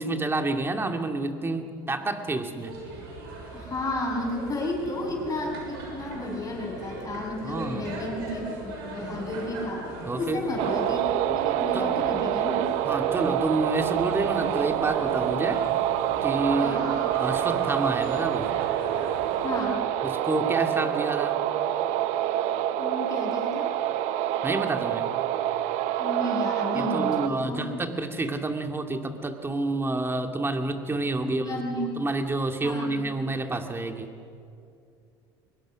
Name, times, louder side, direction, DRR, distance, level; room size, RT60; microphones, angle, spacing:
voice 1, 0.0-2.7 7.4-7.9 10.1-10.4 11.7-11.9 12.9-15.6 16.2-16.8 17.1-18.5 20.0-21.4 24.4-25.1 26.8-34.1, right 2 dB, 20° right, 5 dB, 2.3 m, -29 dB
sound 1, 2.6-19.6, right 2 dB, 85° right, 6.5 m, -39 dB
voice 2, 3.5-9.9 10.2-12.6 16.6-16.9 19.4-19.8 22.8-23.7 26.0-27.7 31.2-32.1 32.6-33.2, left 1 dB, 30° left, 0 dB, 7.3 m, -32 dB
sound 2, 10.6-27.3, right 12 dB, 70° right, 1.0 m, -27 dB
24.0 x 21.5 x 6.3 m, 2.5 s
supercardioid pair, 85°, 12 cm